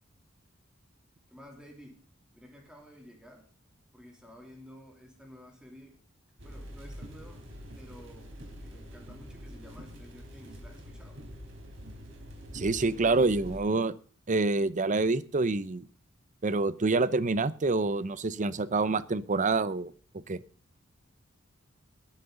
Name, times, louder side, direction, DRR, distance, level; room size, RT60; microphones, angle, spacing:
voice 1, 1.3-2.0 2.3-3.5 3.9-6.0 6.4-7.4 7.7-11.2, equal, 5° right, 0 dB, 3.0 m, -52 dB
sound 1, 6.4-13.6, equal, 65° right, 4.1 m, -45 dB
voice 2, 12.5-13.9 14.3-15.9 16.4-19.9 20.3-20.4, right 3 dB, 40° right, 17 dB, 0.7 m, -27 dB
19.5 x 11.0 x 3.8 m, 0.42 s
head